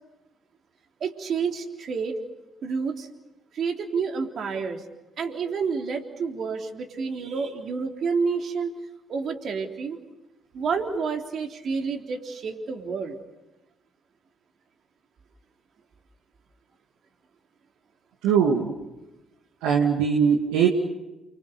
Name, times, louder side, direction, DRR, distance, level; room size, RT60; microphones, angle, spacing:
voice 1, 1.0-2.2 2.6-3.1 3.5-4.8 5.2-8.7 9.1-10.0 10.5-13.2, right 5 dB, 60° right, 3 dB, 3.7 m, -29 dB
voice 2, 18.2-18.7 19.6-20.7, right 7 dB, 75° right, -1 dB, 2.4 m, -21 dB
29.5 x 25.0 x 7.0 m, 1.0 s
hypercardioid pair, 50°, 0 cm